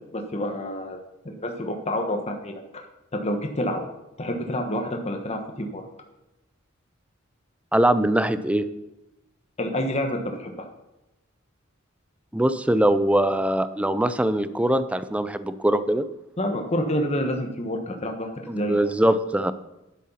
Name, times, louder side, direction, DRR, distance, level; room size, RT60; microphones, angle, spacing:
voice 1, 0.1-1.0 1.2-2.9 3.1-3.8 4.2-5.8 9.6-10.5 16.4-18.8, left 1 dB, 30° left, 3 dB, 1.2 m, -28 dB
voice 2, 7.7-8.7 12.3-16.1 18.5-19.5, right 1 dB, 5° right, 13 dB, 0.5 m, -22 dB
10.5 x 7.9 x 5.7 m, 0.96 s
head